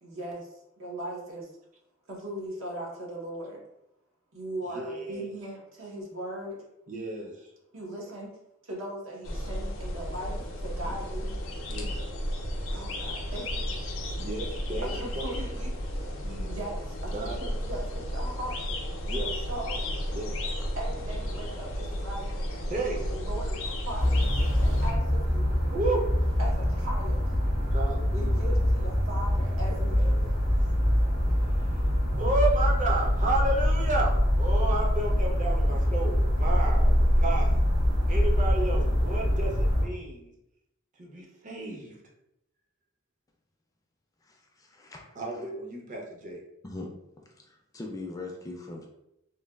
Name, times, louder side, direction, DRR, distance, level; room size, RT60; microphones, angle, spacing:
voice 1, 0.0-1.5 2.1-3.6 4.3-6.6 7.7-8.4 8.6-11.3 12.7-13.9 14.8-16.1 16.5-18.6 19.1-19.8 20.8-22.4 22.8-24.3 24.6-25.5 26.4-27.2 28.1-30.3, right 1 dB, 75° right, -2 dB, 0.8 m, -39 dB
voice 2, 4.7-5.3 6.9-7.3 10.8-10.9 11.7-12.0 14.1-15.2 16.2-16.6 17.1-17.5 19.0-19.3 20.1-20.4 22.7-23.0 25.7-26.0 27.7-28.4 29.7-30.2 32.2-37.6 38.1-40.3 41.0-41.9 45.2-46.4, right 2 dB, 40° right, -1 dB, 0.5 m, -32 dB
sound 1, 9.2-24.9, equal, 90° left, 0.5 m, -33 dB
sound 2, 24.0-39.8, equal, 55° right, 1.3 m, -24 dB
voice 3, 44.2-45.2 46.6-46.9 47.4-48.9, left 2 dB, 15° left, 0 dB, 0.3 m, -41 dB
3.1 x 2.1 x 2.3 m, 0.83 s
head